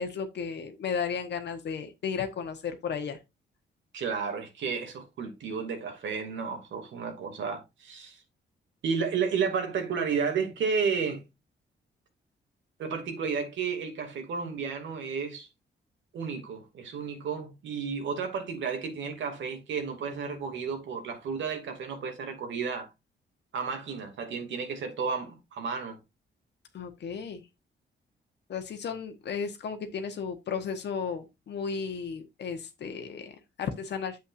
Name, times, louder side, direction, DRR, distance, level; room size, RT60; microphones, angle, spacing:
voice 1, 0.0-3.2 26.7-27.4 28.5-34.2, left 6 dB, 65° left, 1.2 m, -34 dB
voice 2, 3.9-8.2 8.8-11.2 12.8-15.5 16.1-22.9 23.5-26.0, right 5 dB, 80° right, 2.5 m, -32 dB
8.5 x 7.5 x 2.6 m
cardioid pair, 130°, 19 cm